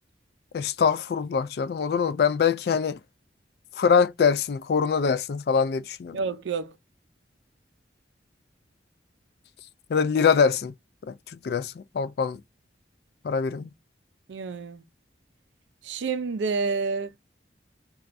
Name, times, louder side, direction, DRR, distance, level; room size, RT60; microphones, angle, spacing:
voice 1, 0.5-3.0 3.8-6.2 9.9-10.7 11.1-12.4 13.2-13.7, left 6 dB, 55° left, 0.3 m, -24 dB
voice 2, 6.1-6.7 14.3-14.8 15.8-17.1, right 4 dB, 85° right, 0.4 m, -29 dB
4.1 x 2.3 x 2.5 m
head